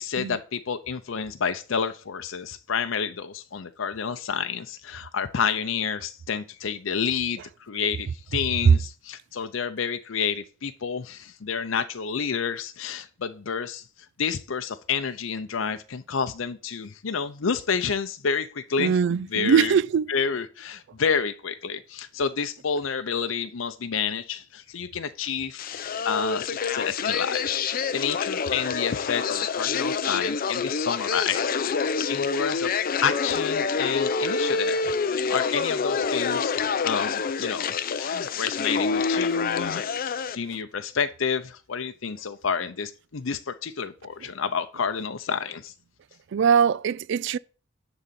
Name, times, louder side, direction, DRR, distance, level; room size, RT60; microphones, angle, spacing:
voice 1, 0.0-13.8 14.2-18.9 19.3-19.7 20.1-32.7 33.0-39.8 40.3-45.7, left 6 dB, 85° left, 0.6 m, -29 dB
voice 2, 18.8-20.1 46.3-47.4, right 7 dB, 65° right, 0.3 m, -22 dB
sound 1, 25.6-40.4, left 5 dB, 45° left, 0.5 m, -27 dB
10.5 x 4.0 x 7.5 m
head